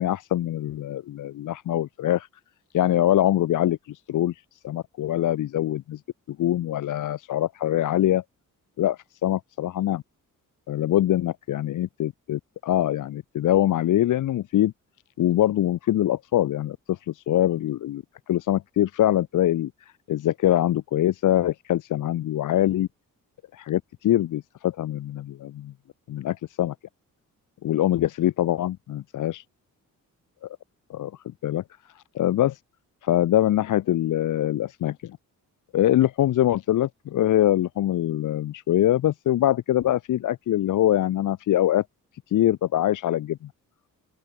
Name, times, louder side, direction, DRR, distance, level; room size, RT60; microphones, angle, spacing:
voice 1, 0.0-2.3 2.7-4.3 4.6-6.0 6.3-8.2 8.8-10.0 10.7-14.7 15.2-19.7 20.1-22.9 23.5-25.7 26.1-26.7 27.6-29.4 30.4-30.5 30.9-31.1 31.4-31.6 32.0-32.6 33.0-35.2 35.7-41.8 42.3-43.5, left 12 dB, 65° left, 0.6 m, -23 dB
open air
cardioid pair, 90°, 34 cm